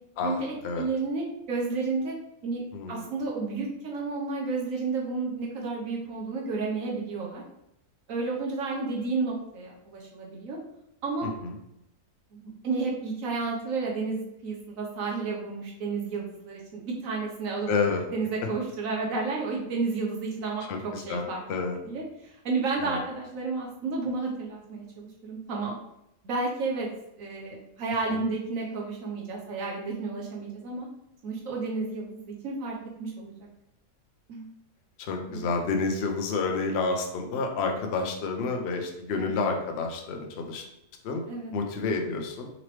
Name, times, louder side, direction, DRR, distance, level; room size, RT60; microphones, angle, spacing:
voice 1, 0.2-2.1 2.4-2.6 2.9-7.4 8.1-10.6 11.0-11.3 12.3-17.7 18.1-21.4 21.8-25.7 26.2-26.9 27.2-30.9 31.2-33.3 34.3-34.5 35.3-35.5 39.1-39.4 41.3-41.5, right 4 dB, 60° right, -2 dB, 1.1 m, -31 dB
voice 2, 2.7-3.0 11.2-11.5 17.7-18.0 20.7-21.8 22.8-23.0 28.1-28.2 35.0-40.7 41.0-41.2 41.5-42.5, left 4 dB, 70° left, 3 dB, 0.6 m, -29 dB
3.8 x 3.0 x 3.1 m, 0.81 s
omnidirectional pair, 1.7 m